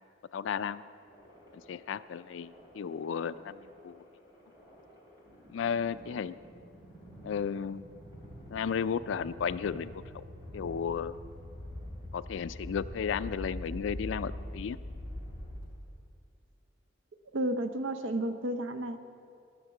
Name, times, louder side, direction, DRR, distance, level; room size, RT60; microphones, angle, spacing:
voice 1, 0.3-0.8 1.5-4.0 5.5-6.3 7.2-7.8 8.5-10.2 10.5-11.1 12.1-14.8, left 7 dB, 75° left, 14 dB, 0.4 m, -34 dB
sound 1, 1.0-16.1, left 1 dB, 25° right, 3.1 m, -45 dB
voice 2, 17.3-19.0, right 1 dB, 85° right, 8 dB, 0.7 m, -32 dB
13.5 x 6.6 x 7.0 m, 2.4 s
head